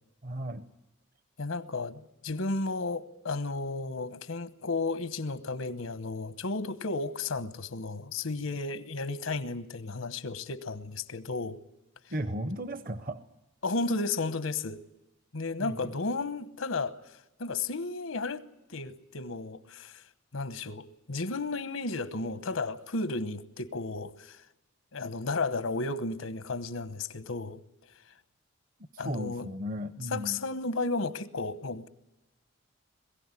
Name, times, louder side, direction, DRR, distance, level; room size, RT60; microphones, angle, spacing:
voice 1, 0.2-0.7 12.1-13.3 15.6-15.9 28.9-30.4, equal, 45° right, 0.7 m, -35 dB
voice 2, 1.4-11.6 13.6-14.8 15.3-17.0 17.4-18.4 18.7-20.0 20.3-24.4 24.9-27.6 29.0-29.5 30.1-31.9, left 3 dB, 85° left, 1.1 m, -33 dB
21.5 x 15.5 x 9.8 m
head